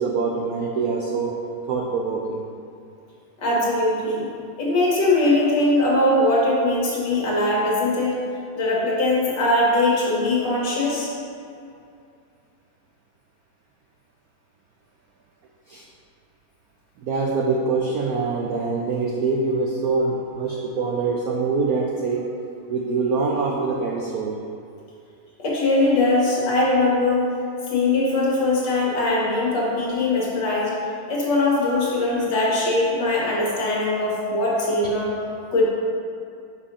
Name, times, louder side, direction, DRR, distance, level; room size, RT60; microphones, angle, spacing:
voice 1, 0.0-1.3 1.7-2.4 15.7-15.8 17.0-22.3 22.7-24.4, right 4 dB, 85° right, -1 dB, 0.8 m, -24 dB
voice 2, 3.4-4.3 4.6-8.2 8.6-11.1 25.4-27.3 27.7-30.7 31.1-35.1 35.5-35.6, left 2 dB, 55° left, -5 dB, 2.1 m, -21 dB
5.5 x 5.4 x 5.4 m, 2.5 s
omnidirectional pair, 2.3 m